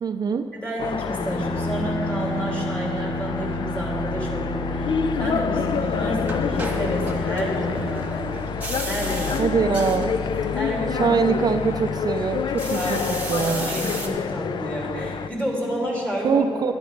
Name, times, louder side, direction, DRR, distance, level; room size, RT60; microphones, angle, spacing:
voice 1, 0.0-0.5 9.4-10.2 11.0-13.0 13.3-13.7 16.2-16.7, right 5 dB, 50° right, 7 dB, 0.4 m, -23 dB
voice 2, 0.5-8.3 8.8-9.4 10.5-11.2 12.7-13.1 13.6-16.4, equal, 15° left, -3 dB, 2.6 m, -30 dB
sound 1, 0.8-15.3, left 6 dB, 60° left, 0.3 m, -28 dB
Bowed string instrument, 1.0-9.0, left 1 dB, 30° left, 1.7 m, -30 dB
sound 2, 5.7-14.1, right 2 dB, 15° right, 1.5 m, -36 dB
11.5 x 8.9 x 5.1 m, 2.8 s
wide cardioid pair, 120°, 9 cm